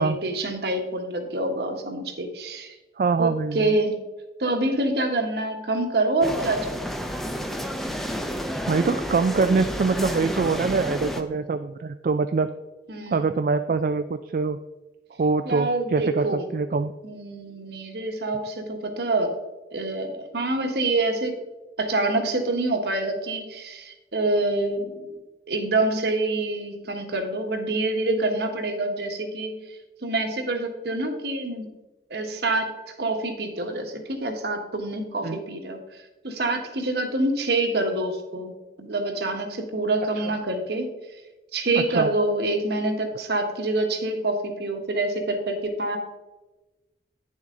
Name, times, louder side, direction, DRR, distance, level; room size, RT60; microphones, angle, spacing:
voice 1, 0.0-2.7 3.2-4.0 4.4-6.9 12.9-13.3 15.4-16.4 17.0-19.3 19.7-21.4 21.8-25.1 25.5-29.6 30.0-31.7 32.1-32.7 33.0-35.8 36.2-40.9 41.5-46.0, right 2 dB, 70° right, 5 dB, 1.3 m, -26 dB
voice 2, 3.0-3.8 8.7-12.5 13.1-14.6 15.2-16.9 35.2-35.4 41.9-42.1, right 4 dB, 50° right, 9 dB, 0.3 m, -24 dB
sound 1, 6.2-11.2, equal, ahead, 0.6 m, -30 dB
9.7 x 7.1 x 3.7 m, 1.1 s
head